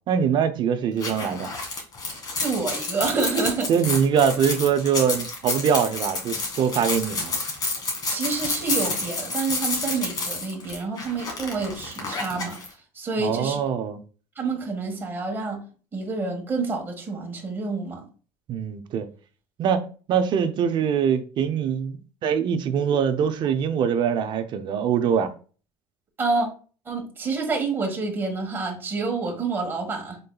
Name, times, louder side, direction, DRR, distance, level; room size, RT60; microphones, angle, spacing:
voice 1, 0.1-1.5 3.7-7.4 13.2-14.0 18.5-19.1 19.6-25.3, right 7 dB, 50° right, 0.6 m, -23 dB
sound 1, 1.0-12.7, left 3 dB, 40° left, 2.0 m, -29 dB
voice 2, 2.4-3.7 8.1-12.6 12.9-13.6 14.3-15.6 15.9-18.0 26.2-26.5 26.8-30.2, right 4 dB, 20° right, 1.5 m, -28 dB
5.3 x 3.8 x 2.3 m
supercardioid pair, 120°, 10 cm